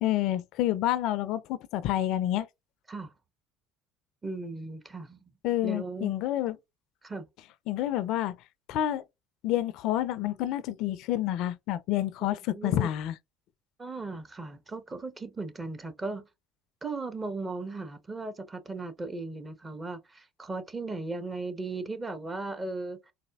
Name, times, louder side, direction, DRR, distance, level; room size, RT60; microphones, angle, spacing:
voice 1, 0.0-2.5 5.4-6.6 7.7-8.4 8.7-9.0 9.4-13.1, left 13 dB, 60° left, 0.4 m, -28 dB
voice 2, 4.2-5.3 5.6-6.1 7.0-7.2 12.5-12.9 13.8-16.3 16.8-23.0, right 3 dB, 25° right, 0.9 m, -37 dB
4.1 x 2.5 x 2.3 m
hypercardioid pair, 70°, 0 cm